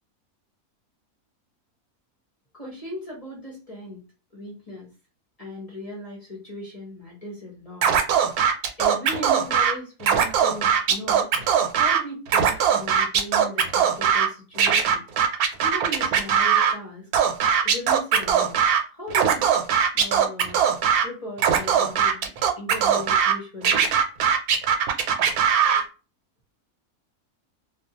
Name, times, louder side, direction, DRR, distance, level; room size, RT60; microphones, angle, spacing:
voice 1, 2.5-4.0 4.3-4.9 5.4-7.9 8.8-11.3 11.7-15.0 15.6-17.1 17.6-18.6 18.9-19.4 19.9-20.6 21.0-23.9, equal, 35° left, -3 dB, 0.7 m, -37 dB
Scratching (performance technique), 7.8-9.7 10.0-12.0 12.3-14.3 14.6-16.7 17.1-18.8 19.1-21.0 21.4-23.3 23.6-25.8, right 8 dB, 80° right, 1.0 m, -20 dB
2.3 x 2.3 x 2.7 m, 0.32 s
omnidirectional pair, 1.6 m